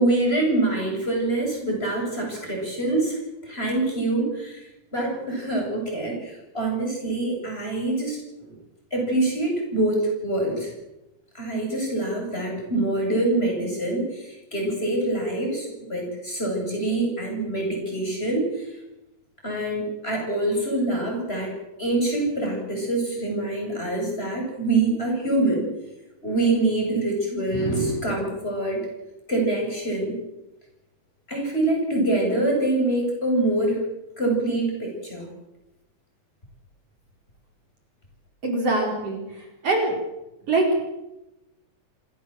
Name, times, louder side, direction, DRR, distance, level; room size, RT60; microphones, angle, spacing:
voice 1, 0.0-4.6 4.9-8.6 8.9-10.7 11.3-18.7 19.4-21.5 21.8-25.6 26.2-28.8 29.3-30.2 31.3-33.8 34.2-35.3, right 2 dB, 20° left, 0 dB, 8.2 m, -25 dB
voice 2, 38.4-39.2 39.6-39.9 40.5-40.8, right 2 dB, 50° right, 1 dB, 5.8 m, -22 dB
27.0 x 17.5 x 7.8 m, 0.96 s
omnidirectional pair, 3.4 m